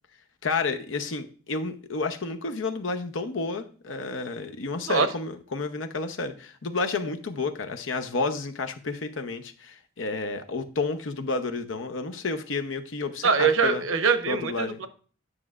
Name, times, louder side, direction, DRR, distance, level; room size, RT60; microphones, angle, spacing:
voice 1, 0.4-13.8 14.3-14.8, left 3 dB, 75° left, 7 dB, 0.7 m, -31 dB
voice 2, 13.2-14.9, right 5 dB, 90° right, 9 dB, 0.8 m, -23 dB
9.7 x 6.1 x 2.4 m, 0.41 s
head